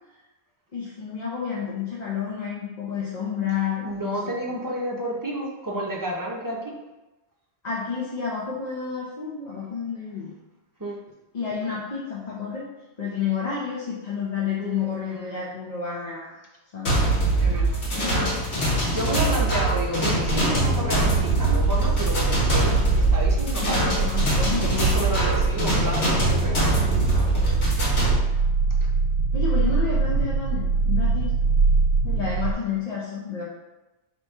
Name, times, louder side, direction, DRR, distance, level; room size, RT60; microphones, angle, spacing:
voice 1, 0.7-4.1 7.6-10.3 11.3-12.7 13.0-16.3 16.7-16.9 17.4-17.8 19.1-19.4 23.7-24.8 29.3-31.3 32.1-33.4, left 6 dB, 45° left, -6 dB, 0.8 m, -30 dB
voice 2, 3.8-6.7 10.8-11.0 14.6-15.4 17.4-17.8 18.5-24.1 24.6-27.8 32.0-32.2, right 1 dB, 20° right, -3 dB, 0.7 m, -31 dB
sound 1, 16.9-28.2, right 2 dB, 70° left, 1.5 m, -23 dB
sound 2, 20.3-32.5, right 4 dB, 80° right, 0.9 m, -24 dB
4.0 x 2.9 x 4.5 m, 1.1 s
omnidirectional pair, 1.1 m